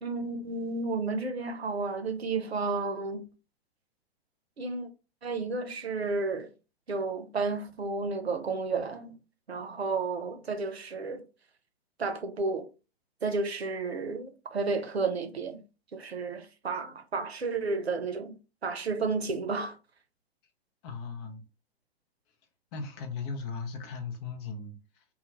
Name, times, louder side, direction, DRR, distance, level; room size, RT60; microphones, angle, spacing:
voice 1, 0.0-3.2 4.6-4.9 5.2-6.5 6.9-9.1 9.5-11.2 12.0-12.7 13.2-15.6 15.9-18.4 18.6-19.8, right 4 dB, 85° right, 0.6 m, -32 dB
voice 2, 20.8-21.4 22.7-25.0, left 4 dB, 25° left, 0.4 m, -37 dB
2.2 x 2.1 x 2.9 m
figure-of-eight pair, 105°, 31 cm